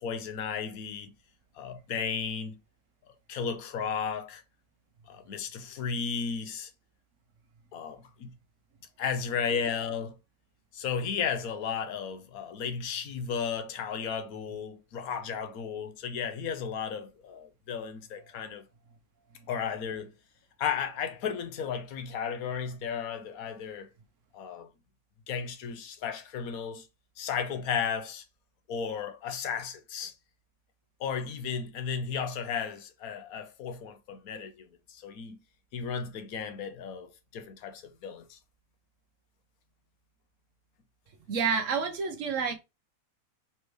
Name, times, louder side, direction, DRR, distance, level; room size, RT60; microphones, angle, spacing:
voice 1, 0.0-1.1 1.6-2.6 3.3-4.4 5.1-6.7 7.7-8.3 9.0-10.1 10.7-18.6 19.5-20.1 20.6-23.9 24.3-24.7 25.3-26.9 27.2-28.2 28.7-30.1 31.0-35.4 35.7-38.4, left 6 dB, 80° left, 1.2 m, -34 dB
voice 2, 41.3-42.5, right 5 dB, 60° right, 1.1 m, -29 dB
4.3 x 3.3 x 3.0 m
omnidirectional pair, 1.5 m